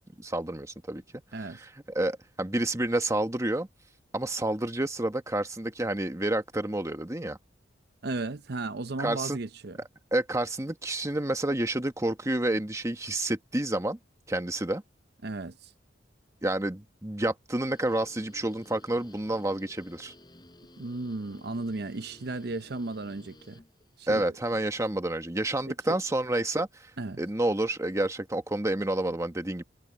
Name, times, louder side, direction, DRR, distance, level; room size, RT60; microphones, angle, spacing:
voice 1, 0.2-1.0 1.5-1.7 1.9-3.7 4.1-7.4 9.0-9.4 10.1-14.0 14.3-14.8 16.4-20.1 24.1-26.9 27.2-29.6, right 1 dB, 15° right, 1.2 m, -29 dB
voice 2, 8.0-9.8 15.2-15.7 20.8-23.6 24.0-24.2 25.9-26.0 27.0-27.2, right 2 dB, 60° right, 0.8 m, -35 dB
Guitar, 17.6-24.2, left 1 dB, 25° left, 7.4 m, -55 dB
head